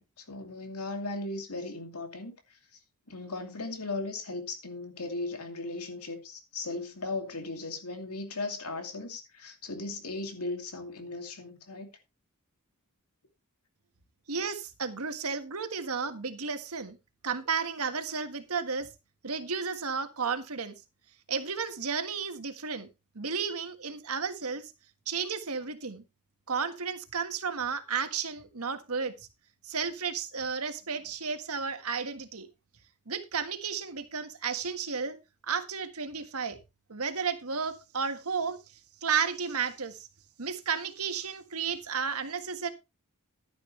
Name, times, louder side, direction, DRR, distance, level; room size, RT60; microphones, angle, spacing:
voice 1, 0.0-2.6 3.1-11.9, left 3 dB, 85° left, 2.6 m, -37 dB
voice 2, 14.3-17.0 17.2-18.9 19.2-20.7 21.3-22.9 23.1-24.7 25.1-26.0 26.5-29.1 29.6-32.5 33.1-35.2 35.4-36.6 36.9-38.6 39.0-40.0 40.4-42.7, right 5 dB, 75° right, 1.5 m, -33 dB
11.5 x 10.0 x 3.2 m
head